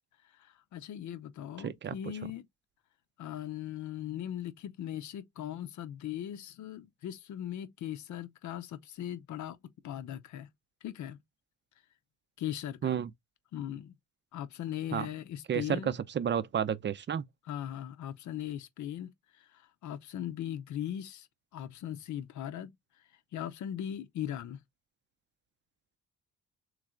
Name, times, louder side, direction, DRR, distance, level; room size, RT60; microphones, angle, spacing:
voice 1, 0.3-2.5 3.2-9.6 9.8-10.5 10.8-11.2 12.4-13.0 13.5-13.9 14.3-16.0 17.5-21.3 21.5-22.7 23.3-24.6, left 11 dB, 70° left, 0.7 m, -39 dB
voice 2, 1.6-1.9 2.2-2.3 12.8-13.1 14.9-15.1 15.5-17.2, right 8 dB, 40° right, 0.5 m, -31 dB
3.3 x 3.2 x 3.7 m
cardioid pair, 90°, 30 cm